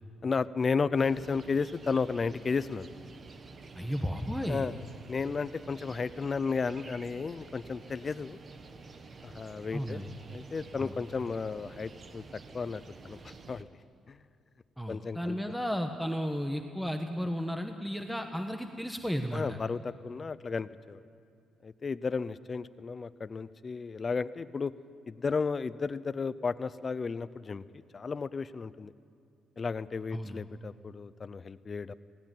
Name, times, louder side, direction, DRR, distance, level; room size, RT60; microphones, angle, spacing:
voice 1, 0.2-2.9 4.5-4.7 5.1-8.4 9.2-10.0 10.3-12.2 12.5-13.7 14.1-14.2 14.9-15.4 19.3-21.0 21.6-24.7 25.1-28.9 29.6-31.9, left 5 dB, 35° left, 15 dB, 0.6 m, -33 dB
sound 1, 1.0-13.6, right 4 dB, 40° right, 1.4 m, -50 dB
voice 2, 3.7-4.7 9.7-10.1 10.8-10.9 14.8-19.6 30.1-30.4, equal, ahead, 5 dB, 1.2 m, -34 dB
17.5 x 17.5 x 9.2 m, 2.5 s
cardioid pair, 90°, 0 cm